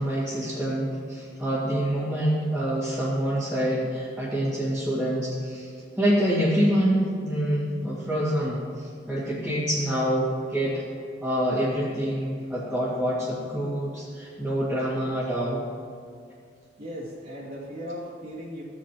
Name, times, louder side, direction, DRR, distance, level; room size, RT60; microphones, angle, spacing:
voice 1, 0.0-5.7 6.0-10.8 11.2-15.6, equal, 5° right, -10 dB, 2.1 m, -26 dB
voice 2, 16.8-18.6, equal, 50° right, -7 dB, 2.2 m, -37 dB
16.0 x 8.5 x 3.0 m, 2.1 s
head